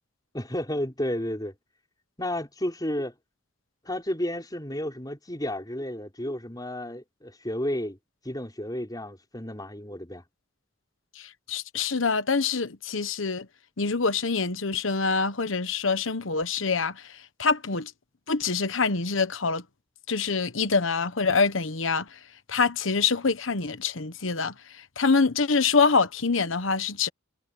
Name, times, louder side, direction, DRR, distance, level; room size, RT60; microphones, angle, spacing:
voice 1, 0.3-1.5 2.2-3.1 3.8-8.0 8.2-10.2, left 1 dB, 20° left, 5.1 m, -32 dB
voice 2, 11.5-13.5 13.8-17.0 17.4-17.9 18.3-19.6 20.1-22.1 22.5-24.5 25.0-27.1, left 4 dB, 80° left, 1.2 m, -25 dB
head